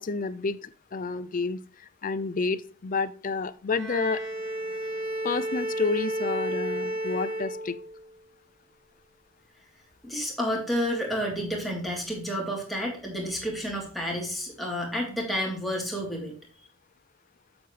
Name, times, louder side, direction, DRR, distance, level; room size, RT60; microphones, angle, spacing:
voice 1, 0.0-1.6 2.0-4.2 5.2-7.8, left 4 dB, 40° left, 16 dB, 0.5 m, -30 dB
Bowed string instrument, 3.7-8.1, right 1 dB, 20° right, 2.9 m, -32 dB
voice 2, 10.0-16.3, equal, ahead, -2 dB, 3.3 m, -30 dB
7.9 x 7.9 x 3.3 m, 0.40 s
head